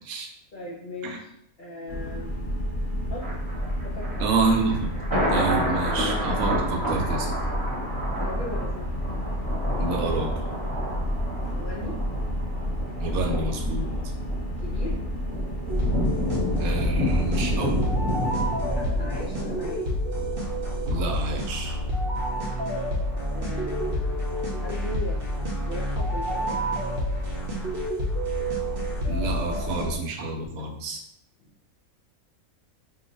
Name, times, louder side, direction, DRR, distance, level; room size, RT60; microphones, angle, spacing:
voice 1, 0.5-1.3 1.6-2.5 3.1-3.4 3.8-4.3 8.2-8.9 11.5-12.0 14.6-15.0 18.7-19.8 23.3-24.3 24.6-25.2 25.6-26.6, left 1 dB, 75° left, -5 dB, 0.4 m, -38 dB
sound 1, 1.9-19.0, equal, 45° left, 0.8 m, -30 dB
Thunder, 3.2-20.3 20.7-20.8, equal, 15° right, 0.8 m, -31 dB
voice 2, 4.2-4.9 5.3-7.3 9.8-10.3 13.0-13.9 16.6-17.8 20.8-21.7 29.1-31.0, right 3 dB, 75° right, 2 dB, 1.0 m, -28 dB
sound 2, 15.7-30.0, equal, 55° right, 0.7 m, -28 dB
2.9 x 2.1 x 3.9 m, 0.73 s
omnidirectional pair, 1.5 m